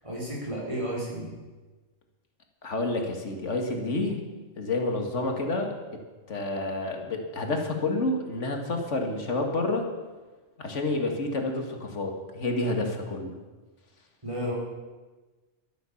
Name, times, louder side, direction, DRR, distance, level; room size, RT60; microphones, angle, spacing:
voice 1, 0.0-1.4 14.2-14.5, equal, 25° right, -4 dB, 4.5 m, -32 dB
voice 2, 2.6-4.2 4.6-5.7 6.3-9.8 10.6-13.3, left 2 dB, 85° left, 3 dB, 2.1 m, -29 dB
12.5 x 11.0 x 7.1 m, 1.2 s
omnidirectional pair, 1.2 m